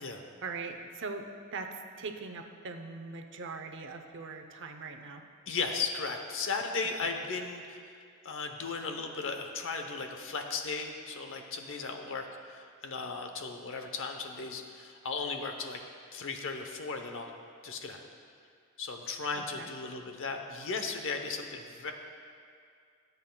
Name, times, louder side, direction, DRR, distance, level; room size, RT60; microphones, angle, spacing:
voice 1, 0.4-5.2 7.0-7.1 19.3-19.7, right 4 dB, 55° right, 5 dB, 0.7 m, -41 dB
voice 2, 5.5-8.0 8.2-15.8 16.1-17.3 17.6-18.0 18.8-21.9, left 4 dB, 60° left, 5 dB, 0.8 m, -36 dB
18.5 x 8.1 x 2.3 m, 2.2 s
head